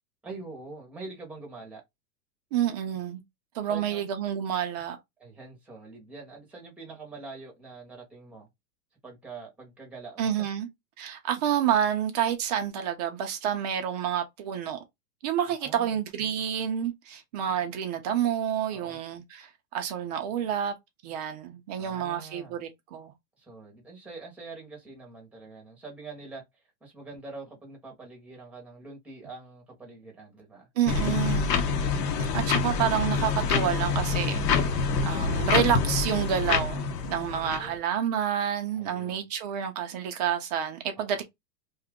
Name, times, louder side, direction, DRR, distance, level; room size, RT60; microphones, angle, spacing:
voice 1, 0.2-1.8 3.6-4.1 5.2-8.5 9.0-10.3 15.4-16.4 18.7-19.0 21.8-22.6 23.4-26.4 26.8-30.7 37.3-37.8 38.8-39.3 40.9-41.2, right 3 dB, 5° right, 0.8 m, -45 dB
voice 2, 2.5-3.2 3.5-5.0 10.2-10.7 11.0-14.8 15.2-20.7 21.0-23.1 30.8-31.6 32.3-41.2, right 9 dB, 25° right, 0.4 m, -29 dB
sound 1, 30.9-37.7, left 5 dB, 75° left, 0.9 m, -26 dB
2.7 x 2.4 x 3.5 m
supercardioid pair, 150°, 49 cm